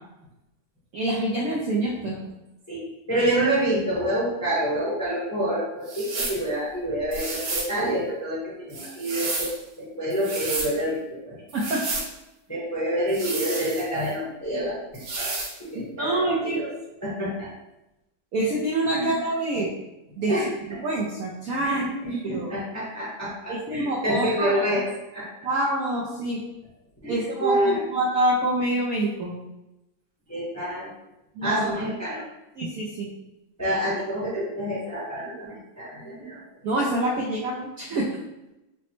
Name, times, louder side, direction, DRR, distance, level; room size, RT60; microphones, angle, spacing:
voice 1, 0.9-2.2 11.5-12.0 16.0-16.6 18.3-19.7 20.2-20.4 20.7-21.9 22.2-22.5 23.5-24.8 25.4-26.4 27.1-29.3 31.4-31.6 32.6-33.1 36.6-38.1, right 1 dB, 80° right, -4 dB, 0.8 m, -26 dB
voice 2, 2.7-11.0 11.3-11.4 12.5-14.8 15.2-15.3 15.6-16.7 17.0-17.5 18.9-19.2 20.3-20.8 21.6-24.9 25.1-25.3 27.0-27.9 30.3-30.9 31.4-32.2 33.6-36.4, right 1 dB, 15° left, -8 dB, 0.6 m, -27 dB
sound 1, 5.9-6.4 7.1-7.7 8.7-9.6 10.1-10.7 11.5-12.1 13.1-14.1 14.9-15.5, right 3 dB, 65° right, 1.4 m, -31 dB
4.9 x 2.1 x 3.0 m, 0.94 s
omnidirectional pair, 2.2 m